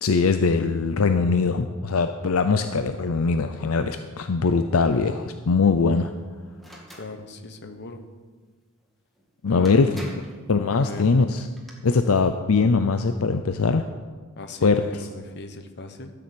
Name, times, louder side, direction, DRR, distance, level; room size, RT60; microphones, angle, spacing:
voice 1, 0.0-6.1 9.4-10.0 10.5-11.5 11.8-13.9 14.6-15.1, left 4 dB, 80° left, 8 dB, 0.6 m, -21 dB
sound 1, 6.6-7.1 9.2-9.3 9.6-10.4 11.3-11.7, equal, ahead, 2.1 m, -43 dB
voice 2, 7.0-8.0 9.5-10.2 10.7-11.1 14.4-16.1, left 2 dB, 55° left, 7 dB, 1.1 m, -38 dB
13.0 x 6.9 x 7.9 m, 1.4 s
head